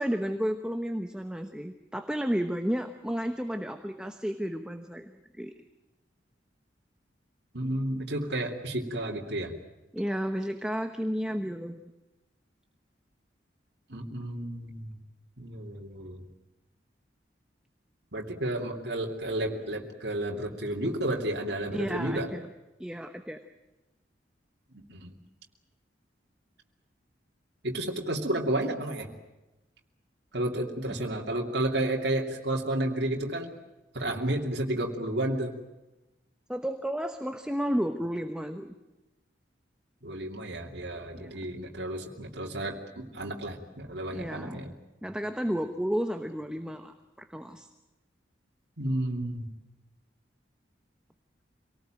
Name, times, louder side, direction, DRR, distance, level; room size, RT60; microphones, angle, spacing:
voice 1, 0.0-5.5 9.9-11.8 21.7-22.5 22.8-23.4 36.5-38.7 41.1-41.4 44.1-44.7 45.0-47.7, equal, 5° right, 6 dB, 1.0 m, -32 dB
voice 2, 7.5-9.5 13.9-15.0 15.4-16.2 18.1-22.3 24.7-25.1 27.6-29.1 30.3-33.5 33.9-35.5 40.0-44.7 48.8-49.5, right 1 dB, 65° right, 0 dB, 2.9 m, -31 dB
26.5 x 19.0 x 9.0 m, 1.0 s
head